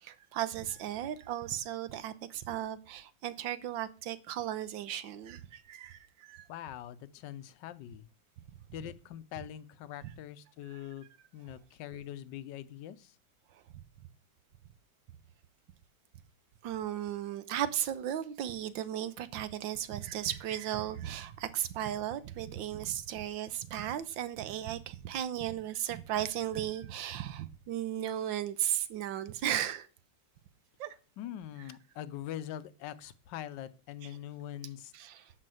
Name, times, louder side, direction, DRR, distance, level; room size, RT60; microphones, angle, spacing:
voice 1, 0.0-6.4 10.0-10.1 10.7-10.8 16.6-29.9 30.8-30.9 34.0-34.1 34.9-35.3, right 11 dB, 90° right, 1.5 m, -36 dB
voice 2, 6.5-8.1 8.7-11.0 11.3-13.1 31.2-34.9, left 11 dB, 75° left, 1.3 m, -43 dB
11.0 x 4.2 x 7.7 m
omnidirectional pair, 2.0 m